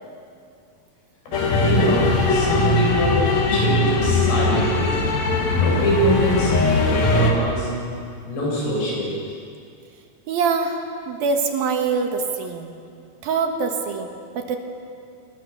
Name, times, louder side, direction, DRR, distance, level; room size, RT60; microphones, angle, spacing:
sound 1, 1.3-7.3, left 2 dB, 45° left, 3.2 m, -20 dB
voice 1, 1.5-5.0 5.4-6.6 6.8-7.7 8.3-9.1, equal, 75° left, -3 dB, 9.1 m, -24 dB
voice 2, 10.3-10.8 11.1-12.7 13.2-14.1 14.4-14.6, right 5 dB, 65° right, 4 dB, 3.1 m, -23 dB
28.0 x 21.5 x 7.0 m, 2.3 s
omnidirectional pair, 4.8 m